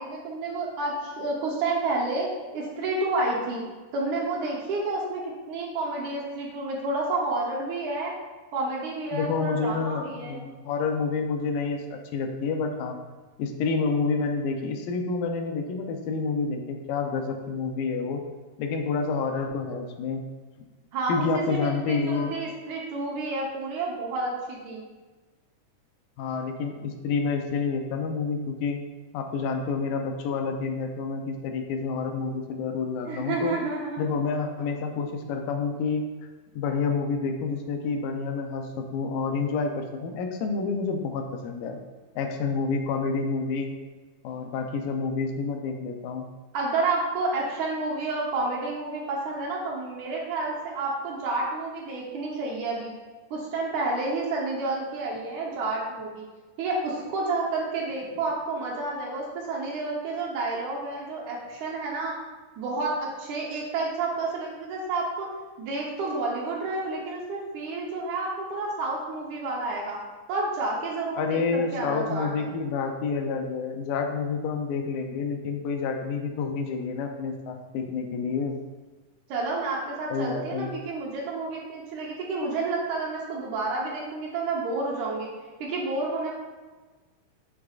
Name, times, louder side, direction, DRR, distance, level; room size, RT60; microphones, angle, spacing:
voice 1, 0.0-3.6 3.9-5.2 5.5-8.1 8.5-10.4 20.9-24.8 33.1-34.1 46.5-52.9 53.3-56.2 56.6-62.2 62.6-65.3 65.6-70.0 70.3-72.5 79.3-85.3 85.6-86.3, right 3 dB, 70° right, -3 dB, 2.1 m, -30 dB
voice 2, 9.1-13.0 13.4-18.2 18.6-20.3 21.1-22.3 26.2-28.8 29.1-33.6 34.0-36.1 36.5-41.8 42.2-43.8 44.2-46.3 71.2-78.6 80.1-80.7, left 4 dB, 85° left, 4 dB, 2.4 m, -29 dB
8.4 x 6.1 x 2.4 m, 1.3 s
omnidirectional pair, 3.9 m